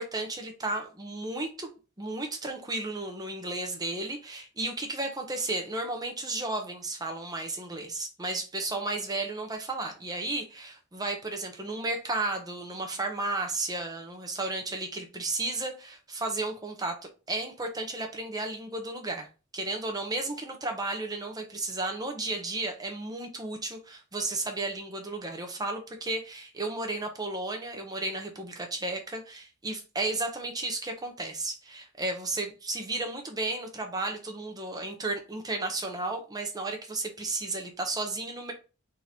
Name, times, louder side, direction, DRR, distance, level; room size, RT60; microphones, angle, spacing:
voice 1, 0.0-1.7 2.0-17.0 17.3-19.3 19.5-38.5, right 2 dB, 20° right, 0.9 m, -33 dB
3.8 x 3.0 x 4.2 m
head